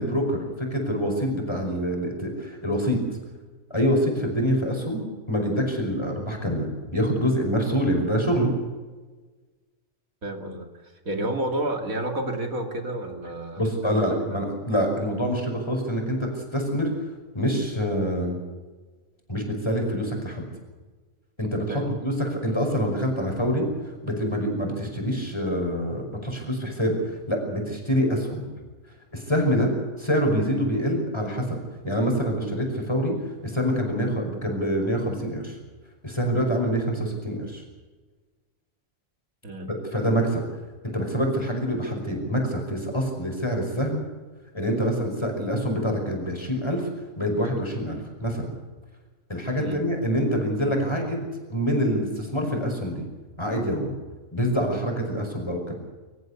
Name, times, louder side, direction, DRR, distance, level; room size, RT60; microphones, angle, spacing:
voice 1, 0.0-3.0 3.7-8.5 13.6-16.9 17.3-18.4 19.3-20.5 21.4-23.7 24.0-28.5 29.1-29.7 30.0-31.6 31.8-33.1 33.4-35.6 36.0-37.6 39.9-40.4 40.9-44.0 44.5-46.9 47.2-48.5 49.3-53.0 53.4-53.9 54.3-55.7, equal, 20° left, 2 dB, 5.4 m, -26 dB
voice 2, 10.2-14.0 14.3-14.4 21.7-21.9 39.4-39.7 49.6-49.8, right 1 dB, 90° right, 4 dB, 3.0 m, -31 dB
25.5 x 14.5 x 8.4 m, 1.3 s
omnidirectional pair, 1.4 m